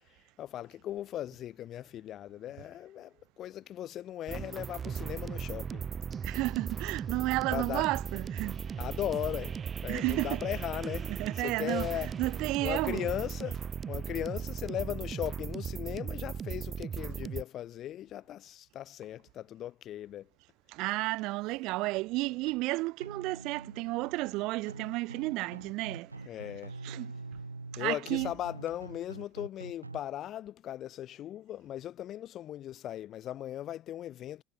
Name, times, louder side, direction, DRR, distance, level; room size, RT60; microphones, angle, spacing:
voice 1, 0.4-5.8 7.5-7.9 8.8-12.1 12.6-20.3 26.3-26.8 27.8-34.4, left 12 dB, 45° left, 2.4 m, -38 dB
sound 1, 4.3-17.4, right 7 dB, 30° right, 1.3 m, -37 dB
voice 2, 6.2-8.6 9.9-10.4 11.1-13.1 20.7-26.2 26.8-27.1 27.7-28.3, right 22 dB, 55° right, 0.8 m, -32 dB
sound 2, 22.5-23.0 23.4-24.6 25.3-25.4 25.6-27.8 28.6-28.9, left 4 dB, 85° left, 6.2 m, -64 dB
sound 3, 23.0-30.0, right 3 dB, 90° right, 0.5 m, -45 dB
figure-of-eight pair, 70°, 0 cm